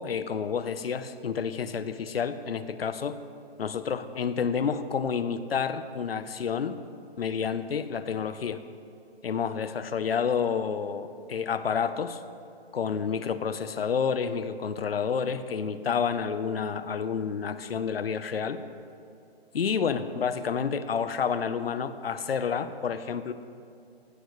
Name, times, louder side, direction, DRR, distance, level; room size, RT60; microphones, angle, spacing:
voice 1, 0.0-3.2 3.6-6.8 7.2-8.6 9.2-12.2 12.7-18.6 19.5-23.3, left 6 dB, 70° left, 12 dB, 0.9 m, -29 dB
18.5 x 16.5 x 3.3 m, 2.5 s
hypercardioid pair, 180°, 31 cm